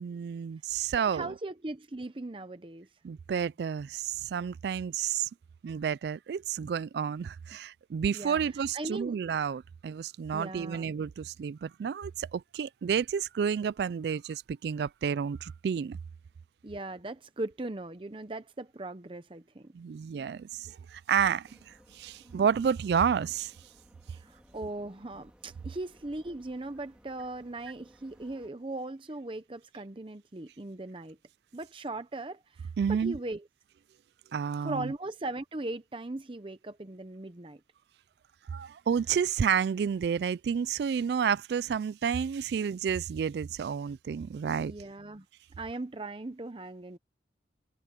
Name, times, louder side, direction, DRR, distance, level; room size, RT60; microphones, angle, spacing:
voice 1, 0.0-1.3 3.0-5.3 5.6-16.0 19.7-23.5 32.8-33.2 34.3-34.9 38.5-44.7, right 7 dB, 70° right, 0.3 m, -30 dB
voice 2, 1.1-2.9 8.1-9.2 10.3-10.9 16.6-19.7 22.2-22.4 24.2-31.2 31.5-33.4 34.6-37.6 44.6-45.3 45.6-47.0, right 2 dB, 30° right, 0.7 m, -39 dB
sound 1, 21.4-28.5, equal, 5° right, 3.6 m, -60 dB
head